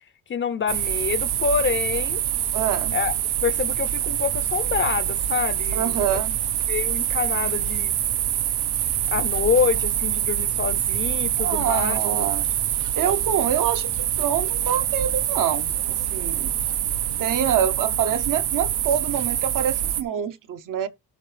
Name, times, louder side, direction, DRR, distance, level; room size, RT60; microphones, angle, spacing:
voice 1, 0.3-2.2 2.9-3.1 3.4-6.2 6.7-7.9 9.1-12.0, left 6 dB, 30° left, 0.6 m, -26 dB
sound 1, 0.7-20.0, right 11 dB, 85° right, 1.1 m, -25 dB
voice 2, 2.5-3.0 5.7-6.3 11.4-12.5 13.0-16.5 17.2-20.9, right 8 dB, 55° right, 0.8 m, -26 dB
13.0 x 5.5 x 3.3 m
cardioid pair, 170°, 39 cm